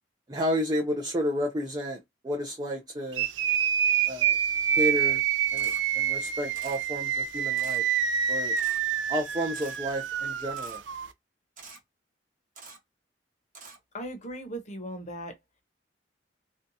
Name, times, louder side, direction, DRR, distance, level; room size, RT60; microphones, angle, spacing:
voice 1, 0.3-3.3 4.1-4.4 4.8-5.2 5.5-7.8 8.3-8.6 9.1-10.8, equal, 20° right, 0.4 m, -31 dB
sound 1, 3.1-11.1, right 8 dB, 75° right, 0.4 m, -27 dB
Camera, 5.6-5.8 6.5-6.8 7.6-7.8 8.6-8.8 9.5-9.8 10.6-10.8 11.6-11.8 12.5-12.8 13.5-13.8, right 4 dB, 45° right, 1.0 m, -46 dB
voice 2, 13.9-15.4, equal, 40° left, 0.8 m, -38 dB
2.7 x 2.2 x 2.6 m
head